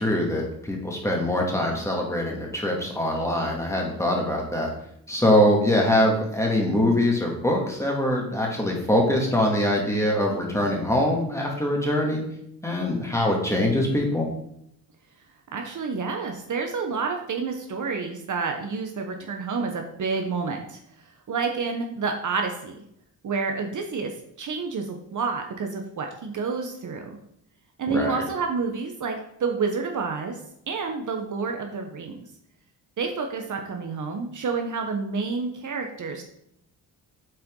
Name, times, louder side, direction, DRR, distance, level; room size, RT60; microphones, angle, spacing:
voice 1, 0.0-4.7 5.1-12.2 12.6-14.3 27.9-28.2, left 1 dB, 5° left, -1 dB, 2.1 m, -23 dB
voice 2, 15.5-20.8 21.3-22.8 23.2-27.2 27.8-30.4 30.7-32.2 33.0-36.2, right 4 dB, 50° right, 3 dB, 1.0 m, -29 dB
7.7 x 4.3 x 3.8 m, 0.74 s
cardioid pair, 80°, 39 cm